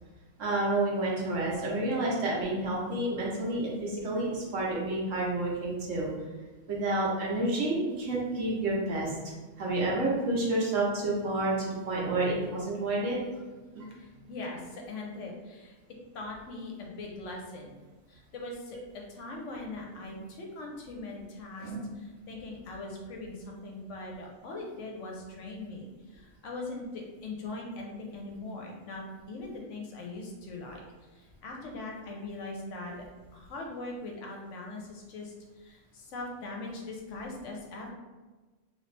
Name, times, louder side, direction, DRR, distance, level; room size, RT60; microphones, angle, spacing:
voice 1, 0.4-6.1 6.7-13.2 13.7-13.9 20.1-20.2 21.6-21.8, right 2 dB, 70° right, -4 dB, 1.2 m, -29 dB
voice 2, 13.9-15.8 16.1-17.7 18.1-18.8 19.1-30.8 31.1-33.1 33.3-37.9, left 2 dB, 65° left, 0 dB, 0.9 m, -41 dB
2.9 x 2.9 x 3.2 m, 1.2 s
omnidirectional pair, 1.4 m